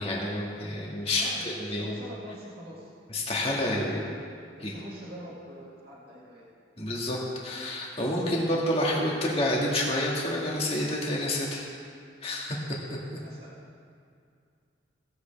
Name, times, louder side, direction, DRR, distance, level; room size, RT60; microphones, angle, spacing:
voice 1, 0.0-1.9 3.1-4.1 4.6-4.7 6.8-11.6 12.2-12.8, left 1 dB, 30° left, -3 dB, 2.0 m, -29 dB
voice 2, 1.2-2.9 3.3-4.1 4.6-6.5 13.2-13.6, equal, 55° right, -6 dB, 2.2 m, -45 dB
18.0 x 8.0 x 3.5 m, 2.4 s
head